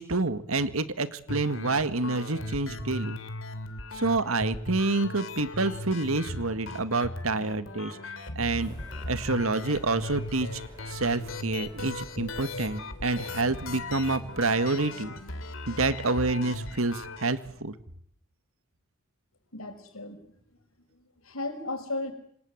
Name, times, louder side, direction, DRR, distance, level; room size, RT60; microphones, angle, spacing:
voice 1, 0.0-3.2 4.0-7.9 8.4-8.7 9.1-10.5 10.9-15.1 15.7-17.7, right 3 dB, 90° right, 11 dB, 1.9 m, -28 dB
sound 1, 1.3-17.3, left 2 dB, 70° left, 3.3 m, -38 dB
sound 2, 8.6-15.5, equal, 20° right, 6.5 m, -51 dB
voice 2, 19.5-20.2 21.0-22.1, left 2 dB, 85° left, 8 dB, 5.8 m, -35 dB
28.0 x 26.0 x 8.0 m, 0.65 s
head